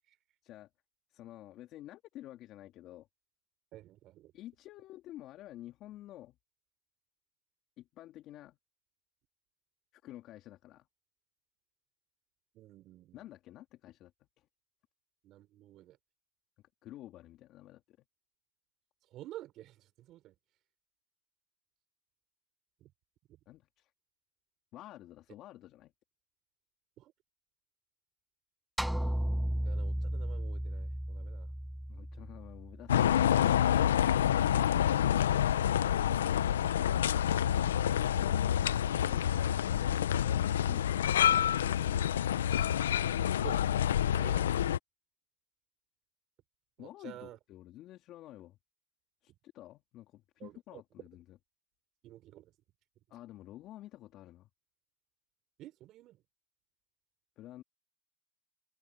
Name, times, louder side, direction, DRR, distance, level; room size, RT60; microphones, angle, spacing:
voice 1, 1.1-3.1 4.3-6.4 7.8-8.6 9.9-10.9 13.1-14.1 14.4-14.5 16.6-18.1 23.5-23.9 24.7-25.9 31.9-34.8 37.6-42.8 46.8-48.6 49.2-51.4 53.1-54.5 57.4-57.6, left 14 dB, 40° left, 3.2 m, -50 dB
voice 2, 3.7-4.3 12.5-13.2 15.2-16.0 19.1-20.3 22.8-22.9 23.3-23.4 27.0-27.1 29.6-31.5 43.4-43.6 44.1-44.5 46.8-47.4 50.4-50.8 52.0-52.5 55.6-56.2, right 14 dB, 40° right, 4.5 m, -50 dB
sound 1, 28.8-33.2, equal, ahead, 0.3 m, -35 dB
sound 2, 32.9-44.8, left 10 dB, 85° left, 0.8 m, -28 dB
hypercardioid pair, 115°, 0 cm